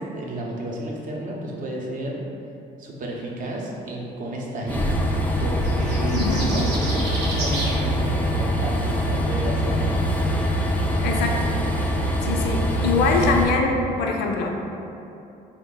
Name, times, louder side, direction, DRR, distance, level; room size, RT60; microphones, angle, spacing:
voice 1, 0.1-2.2 2.8-5.0 5.4-9.9, right 1 dB, 50° right, -2 dB, 0.6 m, -31 dB
Train, 4.7-13.5, equal, 10° left, 0.3 m, -23 dB
sound 1, 5.6-7.8, right 2 dB, 90° right, 0.9 m, -31 dB
voice 2, 6.1-6.5 11.0-11.5 12.2-14.5, left 4 dB, 80° left, 2 dB, 0.5 m, -23 dB
3.5 x 2.1 x 3.8 m, 2.8 s
cardioid pair, 110°, 17 cm